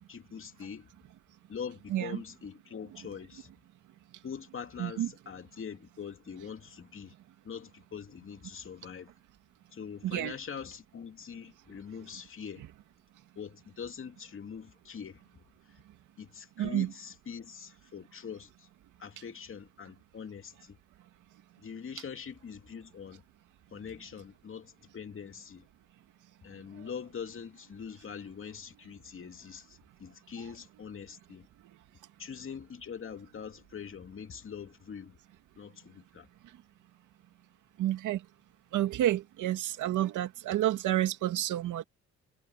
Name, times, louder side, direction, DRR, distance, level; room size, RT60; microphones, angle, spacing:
voice 1, 0.1-0.9 1.5-3.5 4.2-7.1 7.4-9.1 9.7-12.7 13.4-15.2 16.2-18.7 19.0-20.8 21.6-23.2 23.7-25.7 26.4-31.5 32.2-35.2 35.6-36.3, left 7 dB, 45° left, 2.6 m, -43 dB
voice 2, 1.9-2.2 4.8-5.1 10.0-10.3 16.6-16.9 26.8-26.9 37.8-38.3 38.7-41.8, right 13 dB, 85° right, 2.4 m, -30 dB
cardioid pair, 90°, 30 cm